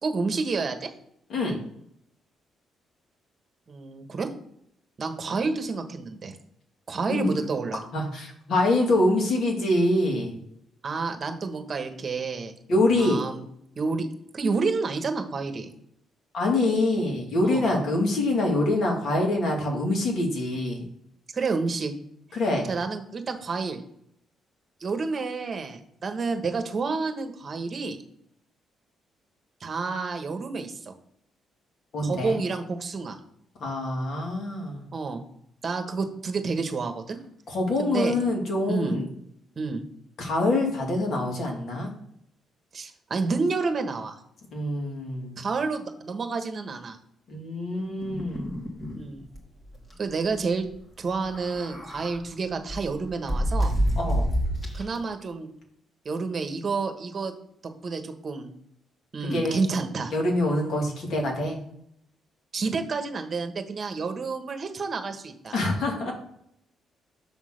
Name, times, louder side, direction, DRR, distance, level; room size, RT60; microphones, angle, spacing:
voice 1, 0.0-0.9 3.7-4.3 5.0-6.3 6.9-7.8 10.8-12.5 13.0-13.4 13.8-14.1 14.3-15.7 17.4-17.7 21.3-21.9 22.7-23.8 24.8-28.0 29.6-30.9 32.0-33.2 34.9-35.2 35.6-37.2 37.8-38.1 38.7-39.0 39.6-39.8 42.7-44.2 45.4-47.0 48.9-49.3 50.0-50.7 51.0-53.7 54.7-55.5 56.0-57.3 57.8-58.5 59.1-60.1 62.5-65.5, right 4 dB, 45° right, 7 dB, 1.2 m, -29 dB
voice 2, 7.9-10.4 12.7-13.2 16.3-20.9 22.3-22.7 31.9-32.4 33.6-34.9 37.5-39.1 40.2-41.9 44.5-45.4 47.3-48.5 54.0-54.3 59.3-59.7 60.1-61.6 65.5-66.1, left 1 dB, 65° left, 0 dB, 2.4 m, -25 dB
sound 1, 48.0-49.0 49.3-49.4 49.7-49.9 51.1-52.2 52.7-55.0, equal, 20° left, 2.1 m, -28 dB
6.9 x 3.8 x 6.4 m, 0.72 s
cardioid pair, 90°, 0 cm